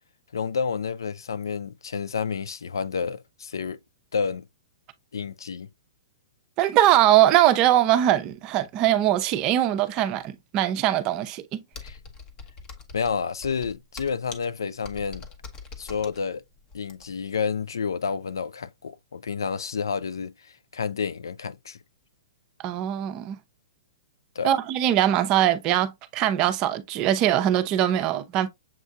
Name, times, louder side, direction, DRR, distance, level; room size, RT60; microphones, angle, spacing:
voice 1, 0.3-3.8 4.1-4.4 5.1-5.7 11.8-12.0 12.9-15.3 15.8-16.4 16.7-20.3 20.7-21.8 24.4-24.6, left 6 dB, 85° left, 0.3 m, -29 dB
voice 2, 6.6-11.6 22.6-23.4 24.4-28.5, right 12 dB, 35° right, 0.6 m, -21 dB
Computer keyboard, 11.7-17.3, left 4 dB, 30° left, 0.8 m, -43 dB
7.3 x 2.6 x 2.3 m
hypercardioid pair, 125°, 2 cm